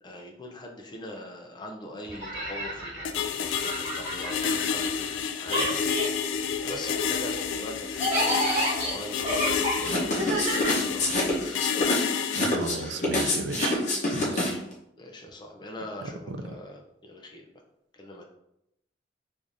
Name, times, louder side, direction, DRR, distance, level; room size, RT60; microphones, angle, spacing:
voice 1, 0.0-3.7 3.9-6.0 6.6-8.4 8.8-10.0 10.3-11.3 14.1-14.6 15.0-17.5 18.0-18.3, left 1 dB, 25° left, 2 dB, 0.4 m, -42 dB
sound 1, 2.0-5.2 5.4-11.4, equal, 35° right, 1.4 m, -31 dB
sound 2, 3.0-12.6, left 7 dB, 90° left, 0.3 m, -30 dB
sound 3, 9.8-14.7, left 2 dB, 40° left, 0.8 m, -27 dB
voice 2, 12.3-13.8 14.1-14.5 16.3-16.4, right 3 dB, 80° right, 7 dB, 0.4 m, -34 dB
4.7 x 2.6 x 2.5 m, 0.81 s
head